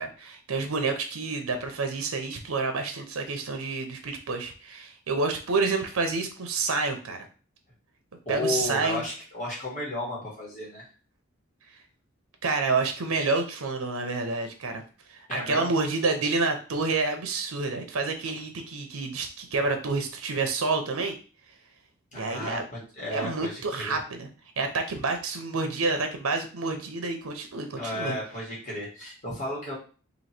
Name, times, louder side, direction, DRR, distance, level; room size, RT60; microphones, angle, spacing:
voice 1, 0.0-7.3 8.3-9.0 12.4-14.8 15.1-21.2 22.1-22.7 23.1-24.3 24.6-28.1, right 3 dB, 85° right, 6 dB, 0.7 m, -28 dB
voice 2, 8.2-10.9 15.3-15.7 22.1-24.0 27.8-29.8, left 1 dB, 35° left, -5 dB, 1.5 m, -33 dB
3.0 x 2.8 x 4.3 m, 0.37 s
head